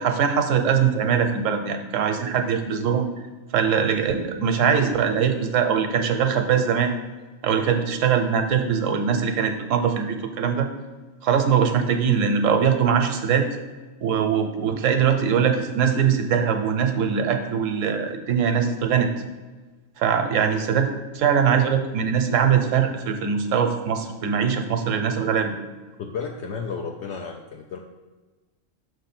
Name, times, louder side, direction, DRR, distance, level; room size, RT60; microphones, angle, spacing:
voice 1, 0.0-3.1 3.5-6.9 7.4-10.7 11.2-13.5 14.0-19.1 20.0-20.9 21.1-25.5, right 7 dB, 80° right, 6 dB, 1.0 m, -22 dB
voice 2, 26.0-27.8, left 5 dB, 70° left, 2 dB, 0.8 m, -32 dB
5.9 x 3.3 x 5.8 m, 1.2 s
omnidirectional pair, 1.3 m